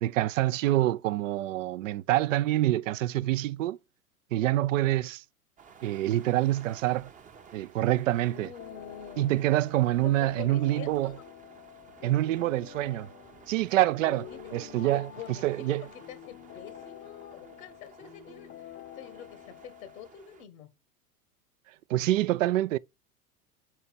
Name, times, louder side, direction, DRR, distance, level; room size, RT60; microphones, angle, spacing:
voice 1, 0.0-3.8 4.3-5.2 5.8-7.1 7.5-8.5 9.2-11.1 12.0-13.1 13.5-15.1 15.4-15.8 21.9-22.8, right 15 dB, 60° right, 0.5 m, -26 dB
sound 1, 5.6-20.4, right 6 dB, 15° right, 0.7 m, -54 dB
voice 2, 8.3-9.3 10.0-11.2 14.3-14.4 14.9-20.7, left 8 dB, 65° left, 1.2 m, -46 dB
sound 2, 8.6-20.2, left 12 dB, 25° left, 0.7 m, -48 dB
5.5 x 4.2 x 5.6 m
figure-of-eight pair, 90°, 45 cm